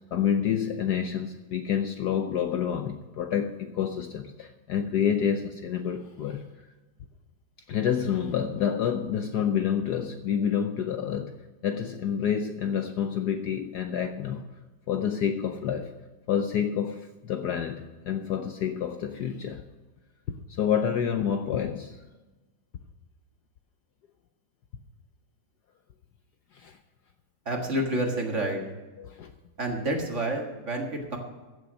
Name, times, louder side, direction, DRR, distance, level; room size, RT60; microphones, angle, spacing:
voice 1, 0.1-6.4 7.7-11.3 11.6-14.4 14.9-15.9 16.3-19.6 20.6-22.0 26.5-26.8 29.0-29.3, left 8 dB, 65° left, 7 dB, 1.1 m, -28 dB
voice 2, 27.5-28.6 29.6-31.2, right 1 dB, 35° right, 2 dB, 1.9 m, -29 dB
15.0 x 7.2 x 6.3 m, 1.2 s
omnidirectional pair, 2.2 m